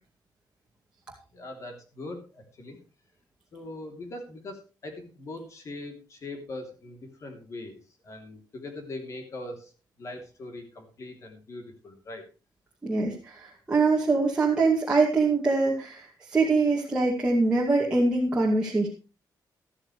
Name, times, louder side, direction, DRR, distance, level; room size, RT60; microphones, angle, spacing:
voice 1, 1.3-2.8 3.5-7.8 8.0-9.7 10.0-12.2, left 2 dB, 40° left, 4 dB, 3.0 m, -41 dB
voice 2, 12.8-18.9, right 3 dB, 10° right, -4 dB, 2.3 m, -24 dB
13.5 x 13.0 x 3.2 m, 0.34 s
wide cardioid pair, 175°, 8 cm